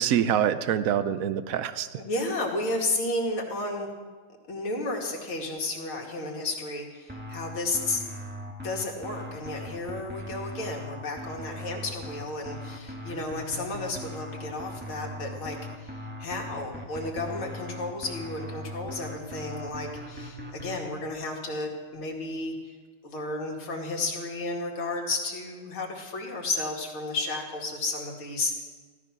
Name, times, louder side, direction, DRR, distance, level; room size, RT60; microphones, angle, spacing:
voice 1, 0.0-2.0, right 9 dB, 85° right, 12 dB, 0.7 m, -25 dB
voice 2, 2.0-3.9 4.5-8.0 8.6-22.8 23.0-28.6, left 2 dB, 80° left, 0 dB, 3.2 m, -32 dB
sound 1, 7.1-20.8, left 1 dB, 5° right, 1.7 m, -39 dB
16.0 x 14.0 x 6.0 m, 1.5 s
omnidirectional pair, 2.3 m